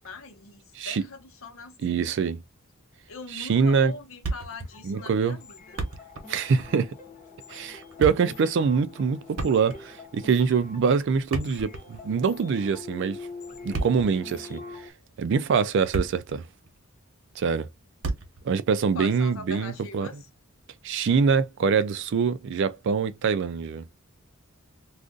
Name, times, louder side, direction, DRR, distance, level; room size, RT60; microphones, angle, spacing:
voice 1, 0.0-2.3 3.1-5.8 18.9-20.3, left 3 dB, 70° left, 1.0 m, -42 dB
voice 2, 1.8-2.4 3.3-3.9 4.8-5.4 6.3-6.9 7.5-13.2 13.6-14.6 15.2-16.4 17.4-17.7 18.5-20.1 20.8-23.8, right 5 dB, 55° right, 0.3 m, -24 dB
Thump thud, 4.2-4.8 5.0-5.1 5.6-6.3 6.6-6.8 7.7-8.4 9.3-10.0 11.1-12.1 13.5-14.2 14.9-15.1 15.6-16.4 16.6-16.8 18.0-18.5, right 2 dB, 85° right, 0.9 m, -32 dB
sound 1, 4.7-14.9, left 4 dB, 35° left, 1.0 m, -44 dB
2.5 x 2.4 x 3.6 m
head